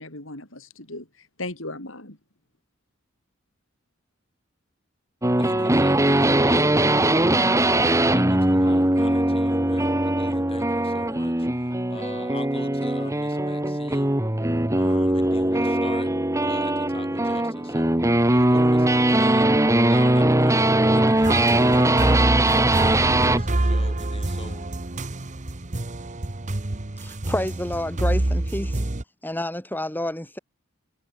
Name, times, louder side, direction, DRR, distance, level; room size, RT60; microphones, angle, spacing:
voice 1, 0.0-2.2, left 2 dB, 70° left, 7.9 m, -37 dB
sound 1, 5.2-23.5, right 1 dB, 15° right, 1.7 m, -20 dB
voice 2, 5.4-6.7 7.0-14.2 14.8-16.1 16.4-18.0 18.3-24.8, left 2 dB, 30° left, 7.9 m, -42 dB
sound 2, 21.2-29.0, right 1 dB, 40° right, 1.2 m, -26 dB
voice 3, 27.0-28.8 29.2-30.4, left 1 dB, 10° left, 5.5 m, -29 dB
head